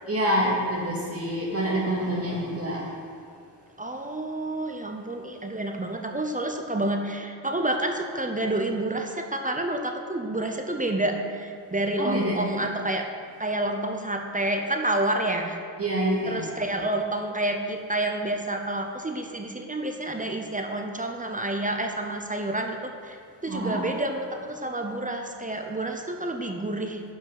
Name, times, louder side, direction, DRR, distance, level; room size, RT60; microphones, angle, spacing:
voice 1, 0.1-2.9 12.0-12.4 15.8-16.5 23.5-23.9, right 1 dB, 35° right, -3 dB, 2.2 m, -26 dB
voice 2, 3.8-13.1 13.4-15.6 16.3-23.2 23.4-27.0, right 1 dB, 20° right, 3 dB, 0.8 m, -29 dB
9.7 x 5.5 x 4.8 m, 2.2 s
cardioid pair, 70°, 41 cm